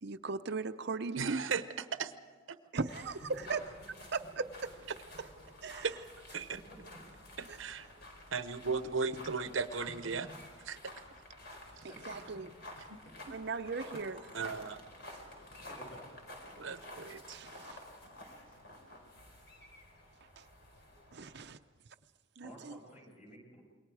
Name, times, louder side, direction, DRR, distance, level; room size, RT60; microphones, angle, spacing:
voice 1, 0.0-1.4 2.7-3.6 4.1-4.7 5.6-5.9 7.5-7.6 11.8-12.5 13.3-14.3 17.3-17.8 20.4-20.5 21.1-21.6 22.4-22.8, right 4 dB, 60° right, 0.7 m, -38 dB
voice 2, 1.2-2.1 2.5-2.6 5.8-5.9 6.3-6.6 7.4-7.9 8.3-10.3 10.7-10.8 12.9-13.0 14.3-14.8 16.6-17.4, right 5 dB, 85° right, 0.9 m, -36 dB
sound 1, 2.9-21.5, left 1 dB, 60° left, 4.6 m, -51 dB
voice 3, 11.9-12.2 15.7-16.1 22.4-23.6, equal, 35° left, 7.4 m, -53 dB
27.5 x 22.5 x 4.8 m
head